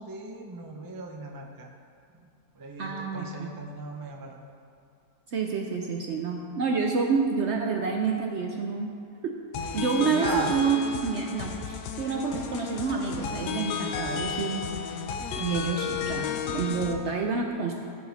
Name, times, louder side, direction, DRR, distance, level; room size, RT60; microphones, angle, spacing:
voice 1, 0.0-1.7 2.1-2.3 2.5-4.4 10.1-10.5, right 2 dB, 35° right, 1 dB, 0.3 m, -37 dB
voice 2, 2.8-3.5 5.3-8.9 9.2-9.4 9.7-14.7 15.4-17.7, right 5 dB, 60° right, 1 dB, 0.7 m, -28 dB
sound 1, 9.5-16.9, left 6 dB, 85° left, 1.3 m, -33 dB
15.0 x 5.0 x 4.1 m, 2.5 s
omnidirectional pair, 1.8 m